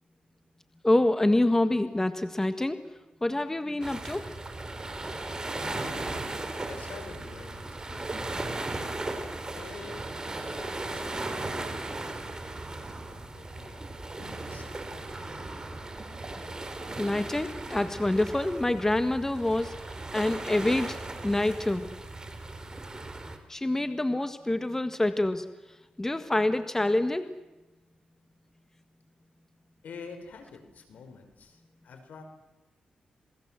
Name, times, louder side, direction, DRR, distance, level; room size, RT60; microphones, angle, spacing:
voice 1, 0.8-2.8 3.2-4.2 17.0-19.8 20.1-21.9 23.5-25.5 26.0-27.3, left 1 dB, 15° left, 10 dB, 1.6 m, -26 dB
sound 1, 3.8-23.4, right 2 dB, 25° right, 3.9 m, -37 dB
voice 2, 5.5-8.1 9.5-12.0 12.3-15.5 29.8-32.2, left 5 dB, 75° left, 6 dB, 5.1 m, -48 dB
27.5 x 20.0 x 7.6 m, 1.1 s
cardioid pair, 65°, 3 cm